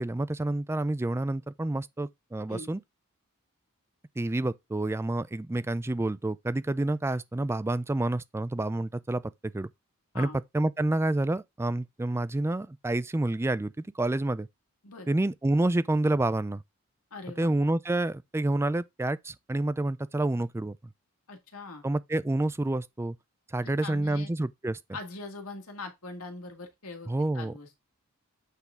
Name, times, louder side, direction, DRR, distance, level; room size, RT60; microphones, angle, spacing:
voice 1, 0.0-2.8 4.2-9.7 10.1-14.5 15.1-16.6 17.4-20.8 21.8-23.2 23.5-24.8 27.1-27.5, right 2 dB, 10° right, 0.3 m, -28 dB
voice 2, 17.1-17.6 21.3-21.8 23.6-24.3 24.9-27.7, left 3 dB, 75° left, 2.0 m, -42 dB
8.2 x 3.9 x 3.6 m
head